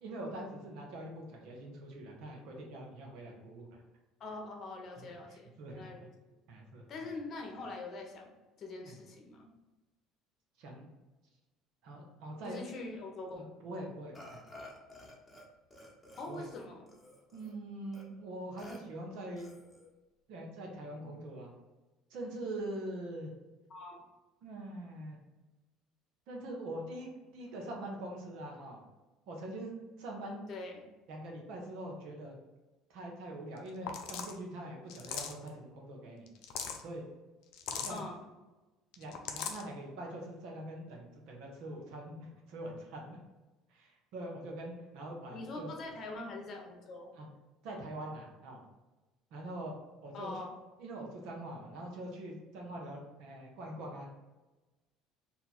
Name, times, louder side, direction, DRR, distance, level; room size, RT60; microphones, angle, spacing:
voice 1, 0.0-3.8 5.0-5.1 5.3-6.0 6.5-6.9 8.9-9.0 10.6-10.9 11.8-12.6 13.4-14.4 16.3-16.4 17.3-19.5 20.3-21.5 22.1-23.3 24.4-25.2 26.3-28.8 29.3-30.4 31.1-32.4 32.9-36.3 36.8-37.0 37.7-38.0 39.0-43.2 43.7-45.8 47.1-47.3 47.6-48.6 49.3-49.7 50.0-50.3 50.8-54.1, right 1 dB, 70° right, 0 dB, 0.9 m, -43 dB
voice 2, 4.2-6.1 6.9-9.5 12.4-13.5 16.2-16.8 23.7-24.1 30.5-30.8 37.9-38.2 45.3-47.1 50.1-50.6, left 2 dB, 50° left, 2 dB, 0.8 m, -43 dB
Burping eructation, 14.1-15.5 15.7-17.5 17.9-18.0 18.6-18.8 19.4-19.9, left 1 dB, 15° left, 1.1 m, -52 dB
sound 1, 33.6-33.7 33.9-34.4 34.9-35.5 36.3-36.8 37.5-38.0 38.9-39.6, left 7 dB, 70° left, 0.4 m, -39 dB
2.8 x 2.3 x 4.2 m, 1.1 s
supercardioid pair, 85°, 0 cm